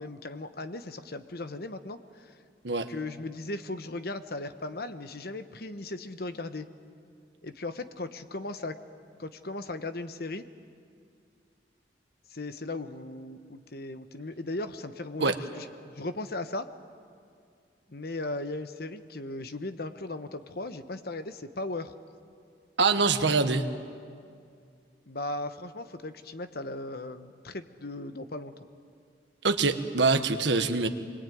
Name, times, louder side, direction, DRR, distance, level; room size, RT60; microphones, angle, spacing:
voice 1, 0.0-2.4 2.9-6.7 7.4-8.8 9.2-10.5 12.3-16.7 17.9-21.9 25.1-28.5, left 2 dB, 55° left, 10 dB, 1.1 m, -37 dB
voice 2, 22.8-23.7 29.4-30.9, right 4 dB, 80° right, 8 dB, 1.3 m, -24 dB
25.5 x 21.5 x 9.3 m, 2.3 s
head